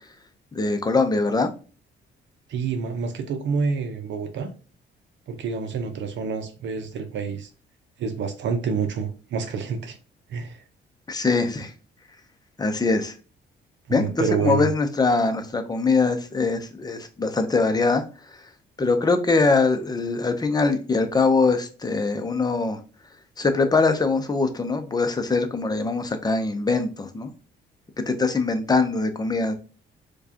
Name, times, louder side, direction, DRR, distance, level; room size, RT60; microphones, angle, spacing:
voice 1, 0.5-1.5 11.1-11.7 12.6-13.1 13.9-18.0 18.8-22.8 23.4-27.3 28.1-29.5, left 3 dB, 20° left, 8 dB, 0.6 m, -22 dB
voice 2, 2.5-4.5 5.3-7.5 8.0-10.0 10.3-10.6 13.9-14.7, right 5 dB, 65° right, 6 dB, 0.6 m, -28 dB
4.6 x 2.3 x 2.8 m, 0.36 s
cardioid pair, 90°, 20 cm